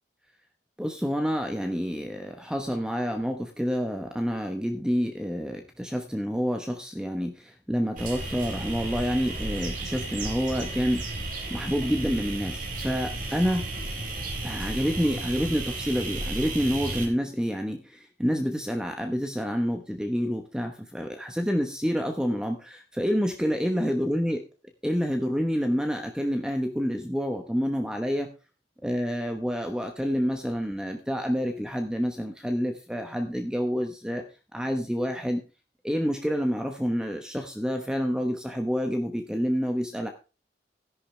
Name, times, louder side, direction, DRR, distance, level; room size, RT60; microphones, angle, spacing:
voice 1, 0.8-11.2 11.5-13.7 14.4-24.4 24.8-28.3 28.8-34.2 34.5-35.4 35.8-40.1, equal, 5° right, 4 dB, 1.1 m, -28 dB
sound 1, 8.0-17.1, right 2 dB, 50° right, 3.9 m, -33 dB
13.5 x 10.5 x 3.3 m, 0.32 s
head